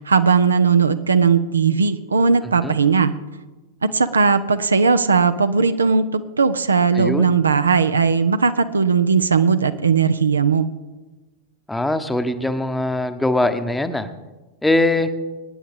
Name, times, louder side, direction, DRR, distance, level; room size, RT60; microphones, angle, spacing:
voice 1, 0.0-3.1 3.8-10.7, right 5 dB, 75° right, 11 dB, 0.6 m, -18 dB
voice 2, 6.9-7.3 11.7-14.1 14.6-15.1, left 2 dB, 5° left, 10 dB, 0.9 m, -21 dB
23.0 x 9.5 x 3.7 m, 1.2 s
figure-of-eight pair, 90°, 0 cm